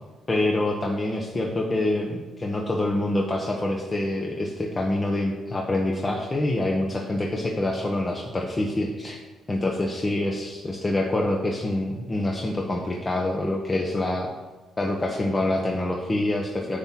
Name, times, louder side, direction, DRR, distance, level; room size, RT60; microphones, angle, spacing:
voice 1, 0.3-9.2 9.5-14.3 14.8-16.8, left 1 dB, 25° left, 0 dB, 1.1 m, -26 dB
9.8 x 4.4 x 7.5 m, 1.2 s
cardioid pair, 90°, 0 cm